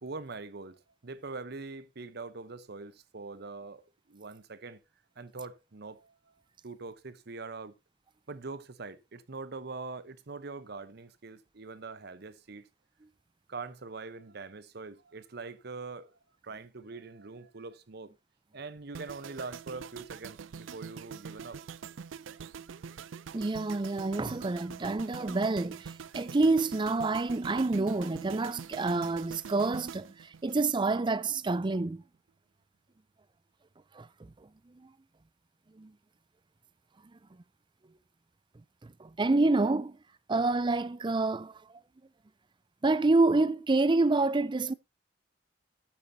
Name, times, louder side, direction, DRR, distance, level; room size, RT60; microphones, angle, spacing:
voice 1, 0.0-4.8 5.2-6.3 6.6-7.7 8.3-12.7 13.5-16.1 16.4-18.1 18.5-21.6 22.3-22.4, right 3 dB, 55° right, 0.9 m, -43 dB
sound 1, 18.9-31.1 31.4-31.7, right 6 dB, 90° right, 0.4 m, -45 dB
voice 2, 23.3-32.0 34.0-34.3 35.8-35.9 39.0-39.9 40.3-41.5 42.8-44.7, right 3 dB, 25° right, 0.5 m, -27 dB
12.5 x 9.0 x 2.7 m
head